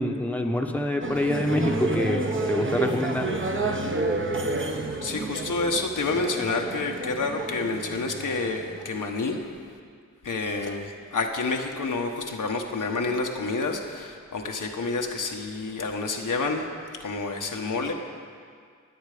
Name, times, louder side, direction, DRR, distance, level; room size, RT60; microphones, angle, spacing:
voice 1, 0.0-3.3, left 1 dB, 5° left, 2 dB, 1.1 m, -26 dB
sound 1, 1.0-8.9, right 2 dB, 40° right, 1.4 m, -30 dB
voice 2, 5.0-9.5 10.2-16.7 16.9-17.9, left 3 dB, 80° left, 2 dB, 1.3 m, -29 dB
20.0 x 8.0 x 5.1 m, 2.1 s
wide cardioid pair, 65°, 31 cm